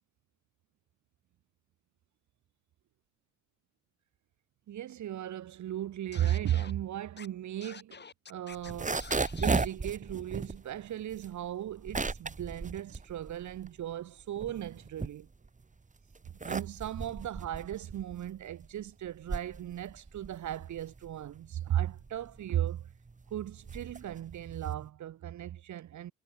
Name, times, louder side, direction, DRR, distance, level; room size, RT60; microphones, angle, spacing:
voice 1, 4.7-8.0 8.3-9.0 9.4-15.3 16.4-22.9 23.3-26.1, right 11 dB, 50° right, 5.1 m, -36 dB
Scratching (performance technique), 6.1-6.7 7.2-7.3 7.6-8.7 9.0-9.7, left 5 dB, 30° left, 3.8 m, -48 dB
sound 1, 8.5-13.8 14.2-15.6 16.1-24.9, right 4 dB, 20° right, 3.2 m, -36 dB
figure-of-eight pair, 50°, 36 cm